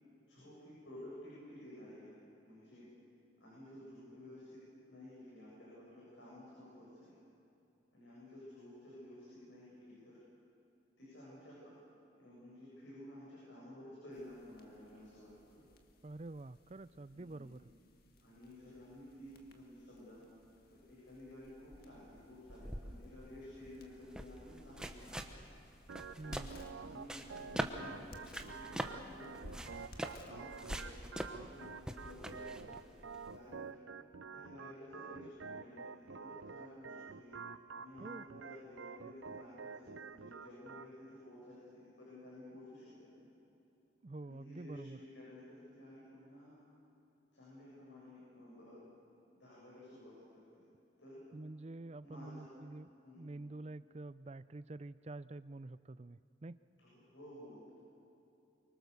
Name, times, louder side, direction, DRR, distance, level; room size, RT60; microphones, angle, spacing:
voice 1, 0.3-2.9 3.4-4.6 4.9-7.2 7.9-10.2 11.0-11.7 12.0-15.6 17.1-17.5 18.2-20.3 20.7-25.3 26.3-29.7 30.2-33.0 33.3-33.8 34.3-37.3 37.7-43.3 44.3-46.6 47.3-48.9 49.3-50.6 51.0-51.2 52.0-52.5 53.0-53.4 56.8-57.7, left 1 dB, 70° left, -7 dB, 7.9 m, -53 dB
sound 1, 14.1-33.7, left 1 dB, 50° left, 1.9 m, -57 dB
voice 2, 16.0-17.7 26.2-26.5 38.0-38.3 44.0-45.0 51.3-52.9 53.2-56.6, right 2 dB, 35° right, 15 dB, 0.5 m, -48 dB
sound 2, 22.5-33.4, right 1 dB, 5° right, 1.0 m, -44 dB
Organ, 25.9-40.9, right 5 dB, 85° right, 0.6 m, -49 dB
24.5 x 24.0 x 6.9 m, 2.9 s
head